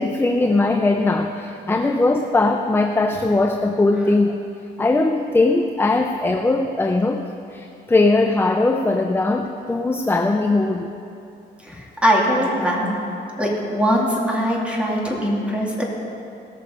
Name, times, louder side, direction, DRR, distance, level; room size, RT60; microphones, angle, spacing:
voice 1, 0.0-4.4 4.8-10.9 14.9-15.0, left 2 dB, 10° left, 5 dB, 0.6 m, -20 dB
voice 2, 11.6-13.0 13.4-15.8, equal, 5° right, -3 dB, 2.7 m, -21 dB
18.0 x 6.7 x 5.3 m, 2.7 s
cardioid pair, 90°, 20 cm